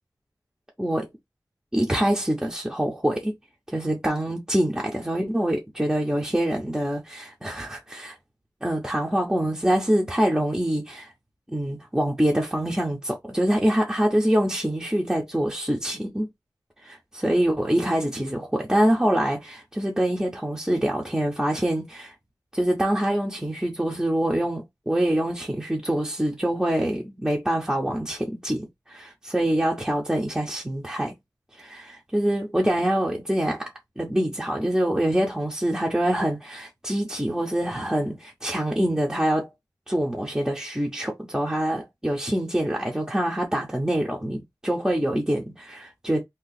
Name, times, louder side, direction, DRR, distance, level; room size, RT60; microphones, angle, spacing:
voice 1, 0.8-1.1 1.7-3.3 3.7-8.2 8.6-11.1 11.5-16.3 16.8-22.1 22.5-31.1 31.5-33.7 34.0-39.5 39.9-46.2, right 1 dB, 10° right, 0.7 m, -25 dB
2.7 x 2.3 x 3.9 m
wide cardioid pair, 90°, 7 cm